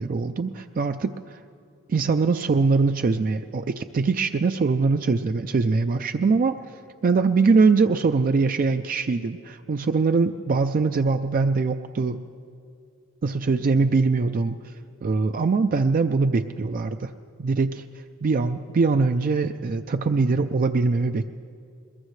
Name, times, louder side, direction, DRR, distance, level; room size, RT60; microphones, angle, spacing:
voice 1, 0.0-1.4 1.9-6.6 7.0-12.2 13.2-14.6 15.0-17.1 17.4-17.8 18.2-21.3, right 4 dB, 40° right, 8 dB, 0.4 m, -22 dB
21.5 x 21.0 x 3.2 m, 2.4 s
head